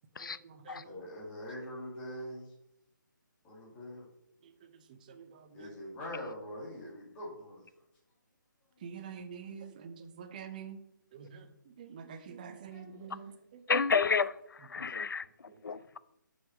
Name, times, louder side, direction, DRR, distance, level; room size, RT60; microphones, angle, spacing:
voice 1, 0.2-0.9 4.9-5.7 8.8-10.8 11.1-11.5 11.8-13.6 14.8-14.9, right 6 dB, 25° right, 0.7 m, -47 dB
voice 2, 0.8-2.5 3.4-4.1 5.5-7.6 8.9-9.0 12.7-13.3, left 1 dB, 10° left, 2.2 m, -43 dB
voice 3, 13.7-15.2 15.6-16.0, left 5 dB, 75° left, 0.6 m, -30 dB
6.2 x 5.7 x 6.1 m
hypercardioid pair, 165°, 11 cm